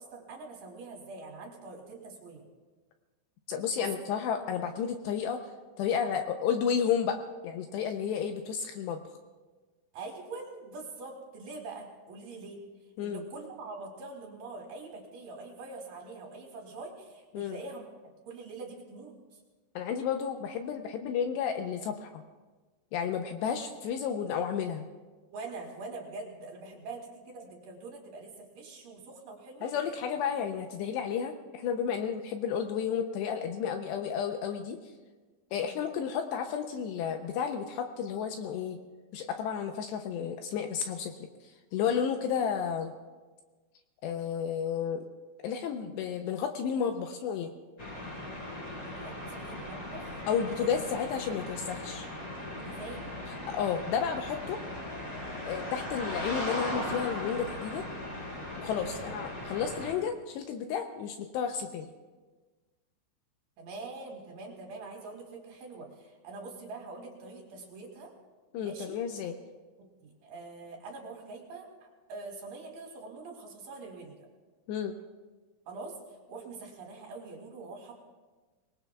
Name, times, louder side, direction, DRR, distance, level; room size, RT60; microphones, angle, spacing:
voice 1, 0.0-2.5 3.7-3.9 9.9-12.6 13.0-17.8 18.2-19.4 25.3-29.7 35.5-35.8 48.8-50.5 52.6-53.1 58.8-59.1 63.6-68.1 68.6-69.0 69.8-74.3 75.7-77.9, right 3 dB, 60° right, 0 dB, 3.1 m, -44 dB
voice 2, 3.5-5.4 5.8-7.2 7.4-9.0 13.0-13.2 17.3-17.6 19.8-22.2 22.9-24.9 29.6-34.8 35.5-38.8 39.1-41.2 41.7-42.9 44.0-45.1 45.4-47.5 50.3-52.1 53.3-54.6 55.5-57.9 58.6-61.9 68.5-69.3 74.7-75.0, left 7 dB, 80° left, 5 dB, 2.6 m, -32 dB
sound 1, 47.8-59.9, left 1 dB, 25° left, 5.0 m, -38 dB
25.0 x 20.0 x 2.3 m, 1.3 s
omnidirectional pair, 5.4 m